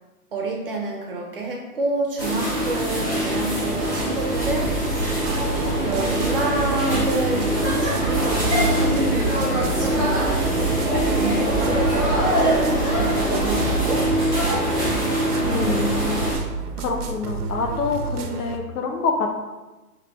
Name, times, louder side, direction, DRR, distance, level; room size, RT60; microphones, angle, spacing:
voice 1, 0.3-4.8 5.4-14.1, right 2 dB, 35° right, 0 dB, 0.6 m, -29 dB
sound 1, 2.2-16.3, right 1 dB, 15° left, 0.7 m, -23 dB
sound 2, 4.3-18.6, right 3 dB, 75° right, 0.7 m, -30 dB
voice 2, 15.4-16.2 16.8-19.3, left 4 dB, 70° left, 4 dB, 0.9 m, -26 dB
4.1 x 2.8 x 4.3 m, 1.1 s
hypercardioid pair, 170°, 46 cm